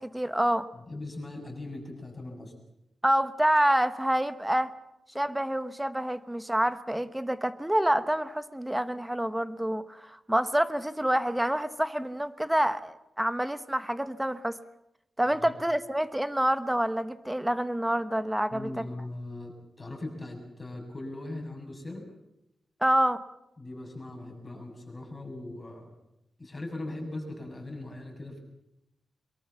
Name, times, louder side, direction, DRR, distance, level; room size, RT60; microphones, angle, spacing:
voice 1, 0.0-0.7 3.0-4.7 5.1-14.6 15.2-18.8 22.8-23.2, right 1 dB, 5° right, 12 dB, 1.2 m, -27 dB
voice 2, 0.7-2.5 15.4-15.5 18.5-22.1 23.6-25.9 26.4-28.4, left 2 dB, 20° left, 2 dB, 7.0 m, -40 dB
24.0 x 22.5 x 7.0 m, 0.85 s
wide cardioid pair, 140°, 0 cm